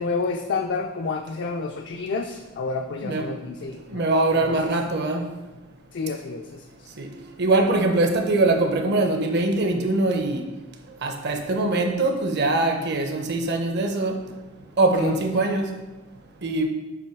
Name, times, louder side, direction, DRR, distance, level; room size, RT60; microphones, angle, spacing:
voice 1, 0.0-4.1 4.5-4.8 5.9-6.9 15.0-15.2, left 4 dB, 60° left, 4 dB, 0.4 m, -30 dB
voice 2, 3.0-3.3 3.9-5.3 7.0-7.1 7.4-10.5 11.0-14.2 14.8-15.7 16.4-16.7, right 2 dB, 55° right, 4 dB, 0.8 m, -22 dB
7.6 x 3.1 x 4.5 m, 1.1 s
head